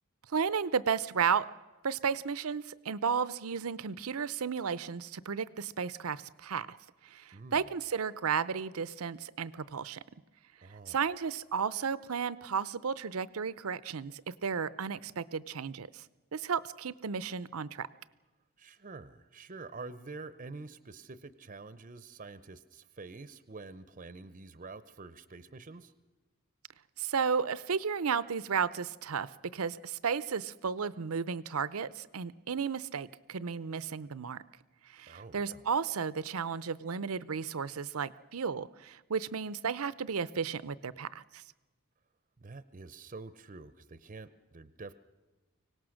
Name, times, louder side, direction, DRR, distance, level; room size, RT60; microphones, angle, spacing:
voice 1, 0.3-1.5 1.8-6.8 7.0-10.0 10.9-16.0 16.3-17.9 27.0-34.4 34.9-41.4, right 6 dB, 80° right, 17 dB, 0.6 m, -33 dB
voice 2, 10.6-11.0 18.6-25.9 35.1-35.6 42.4-44.9, right 3 dB, 35° right, 14 dB, 0.6 m, -47 dB
24.5 x 18.0 x 6.4 m, 1.2 s
head